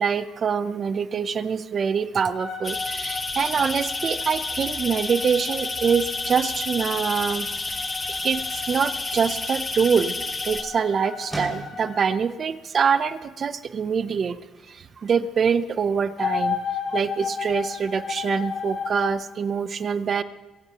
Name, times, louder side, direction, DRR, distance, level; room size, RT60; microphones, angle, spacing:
voice 1, 0.0-7.9 8.2-10.1 10.4-14.4 14.7-16.6 16.9-20.2, right 6 dB, 40° right, 13 dB, 0.6 m, -25 dB
sound 1, 2.3-12.1 16.2-19.1, left 5 dB, 50° left, 3.7 m, -34 dB
sound 2, 2.6-10.6, left 3 dB, 20° left, 0.7 m, -30 dB
sound 3, 9.3-19.0, right 1 dB, 5° right, 5.8 m, -45 dB
22.5 x 16.5 x 2.9 m, 1.1 s
cardioid pair, 135°, 0 cm